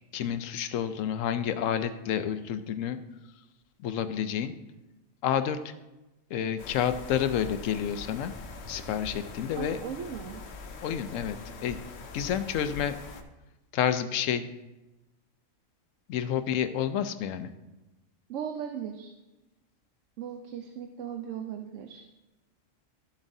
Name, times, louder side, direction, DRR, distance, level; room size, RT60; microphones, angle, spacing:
voice 1, 0.1-3.0 3.8-4.5 5.2-5.7 6.3-8.3 8.7-9.8 10.8-11.4 11.6-11.8 12.1-13.0 13.7-14.5 16.1-17.5, left 9 dB, 90° left, 11 dB, 1.0 m, -29 dB
sound 1, 6.6-13.2, left 3 dB, 60° left, 1.0 m, -43 dB
voice 2, 9.6-10.4 18.3-19.1 20.2-22.0, right 8 dB, 80° right, 5 dB, 1.0 m, -37 dB
13.0 x 7.2 x 2.7 m, 1.0 s
omnidirectional pair, 1.3 m